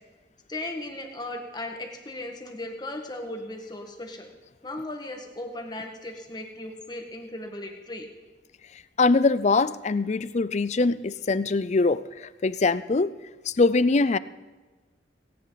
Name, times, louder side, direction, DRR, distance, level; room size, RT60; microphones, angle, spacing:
voice 1, 0.5-4.3 4.6-8.1, left 1 dB, 25° left, 3 dB, 1.8 m, -37 dB
voice 2, 9.0-13.1 13.5-14.2, left 3 dB, 40° left, 16 dB, 0.5 m, -23 dB
18.0 x 18.0 x 4.0 m, 1.2 s
head